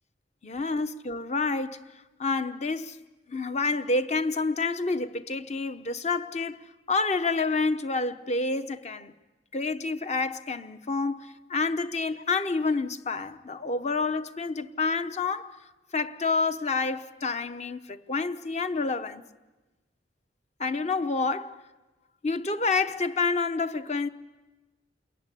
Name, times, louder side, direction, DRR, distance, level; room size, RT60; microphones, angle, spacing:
voice 1, 0.4-1.8 2.2-3.0 3.3-9.1 9.5-15.6 15.9-19.2 20.6-21.6 22.2-24.1, left 3 dB, 40° left, 1.0 m, -28 dB
28.5 x 21.0 x 10.0 m
head